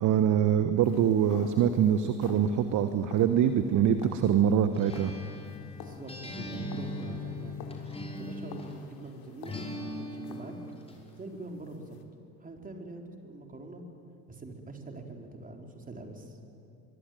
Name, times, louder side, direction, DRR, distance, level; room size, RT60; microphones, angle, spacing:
voice 1, 0.0-5.1, right 9 dB, 40° right, 10 dB, 1.2 m, -24 dB
sound 1, 0.8-12.0, left 7 dB, 50° left, 3.2 m, -50 dB
Acoustic guitar, 4.7-8.9 9.5-11.0, left 1 dB, 10° left, 5.3 m, -39 dB
voice 2, 5.8-7.6 8.2-9.6 10.0-10.5 11.2-12.0 12.4-13.8 14.3-16.4, right 2 dB, 15° right, 3 dB, 4.1 m, -44 dB
23.5 x 23.0 x 9.2 m, 2.5 s
figure-of-eight pair, 75°, 47 cm